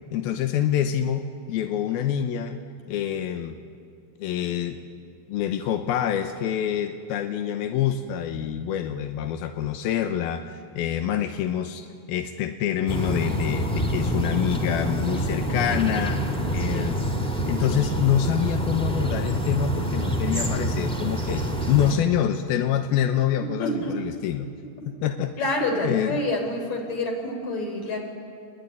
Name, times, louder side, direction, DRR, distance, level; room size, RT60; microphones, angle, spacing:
voice 1, 0.1-2.6 2.9-3.6 4.2-4.8 5.3-16.2 16.5-17.0 17.5-24.5 24.9-25.5 25.8-26.2, left 10 dB, 90° left, 7 dB, 2.8 m, -26 dB
sound 1, 12.9-22.0, right 1 dB, ahead, 1.6 m, -26 dB
voice 2, 23.4-24.0 25.4-28.0, left 1 dB, 50° left, 2 dB, 5.4 m, -27 dB
27.5 x 21.5 x 9.8 m, 2.4 s
omnidirectional pair, 4.3 m